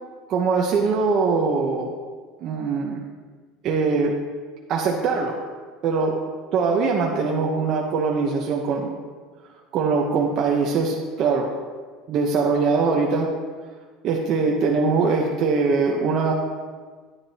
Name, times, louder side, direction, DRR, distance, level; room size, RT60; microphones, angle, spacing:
voice 1, 0.3-1.9 2.4-3.0 3.6-4.2 4.7-5.4 5.8-6.2 6.5-8.9 9.7-11.5 12.1-13.3 14.0-16.3, right 4 dB, 40° right, -1 dB, 0.8 m, -22 dB
10.0 x 9.8 x 2.8 m, 1.5 s
cardioid pair, 155°, 0 cm